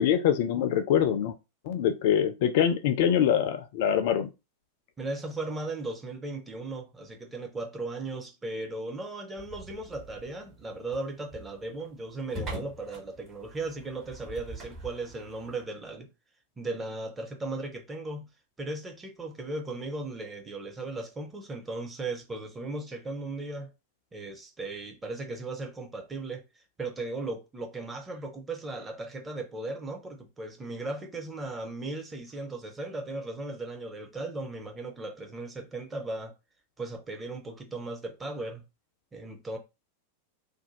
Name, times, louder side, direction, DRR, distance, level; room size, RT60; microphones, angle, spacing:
voice 1, 0.0-1.3 1.6-4.3, left 9 dB, 50° left, 0.3 m, -24 dB
voice 2, 5.0-16.1 16.6-18.3 18.6-23.7 24.1-26.4 26.8-36.3 36.8-38.6 39.1-39.6, right 2 dB, 15° right, 0.7 m, -37 dB
sound 1, 9.4-15.6, right 1 dB, 30° right, 1.3 m, -44 dB
2.5 x 2.1 x 2.9 m
figure-of-eight pair, 90°, 0 cm